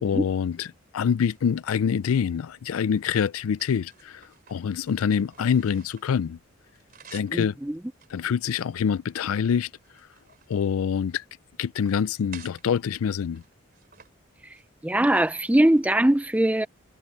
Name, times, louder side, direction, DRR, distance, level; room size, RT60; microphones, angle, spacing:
voice 1, 0.0-0.7 0.9-6.4 7.1-7.6 8.1-9.7 10.5-11.2 11.6-13.4, left 7 dB, 90° left, 0.4 m, -25 dB
sound 1, 1.2-2.1 2.7-6.2 6.5-7.4 7.9-9.2 9.6-11.3 11.7-12.6 13.3-14.1 14.4-14.6 15.0-16.0, right 8 dB, 45° right, 3.6 m, -53 dB
voice 2, 7.3-7.8 14.8-16.7, right 1 dB, 5° right, 0.4 m, -21 dB
head